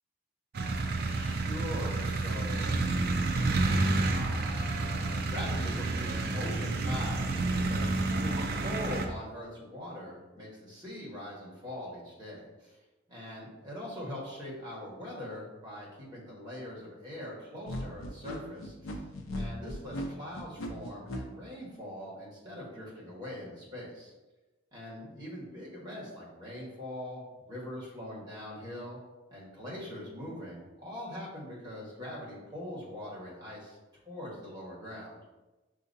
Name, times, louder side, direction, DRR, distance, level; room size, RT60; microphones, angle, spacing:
sound 1, 0.5-9.1, right 2 dB, 50° right, 0.4 m, -30 dB
voice 1, 1.1-2.7 4.1-12.8 13.1-19.0 19.3-24.1 24.7-29.0 29.3-33.8 34.0-35.2, left 1 dB, 20° right, -7 dB, 1.4 m, -42 dB
sound 2, 17.7-21.2, left 1 dB, 85° left, 0.6 m, -37 dB
6.2 x 2.8 x 2.6 m, 1.1 s
head